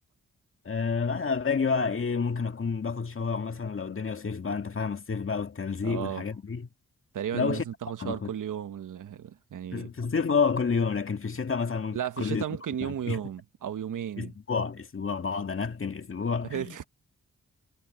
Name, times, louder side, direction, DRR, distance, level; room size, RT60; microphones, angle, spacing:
voice 1, 0.7-6.7 7.3-7.7 8.0-8.3 9.7-12.4 12.8-13.2 14.2-16.8, left 5 dB, 45° left, 2.0 m, -29 dB
voice 2, 5.8-6.2 7.1-9.9 11.9-14.3 16.5-16.8, right 9 dB, 85° right, 1.2 m, -34 dB
cardioid pair, 75°, 31 cm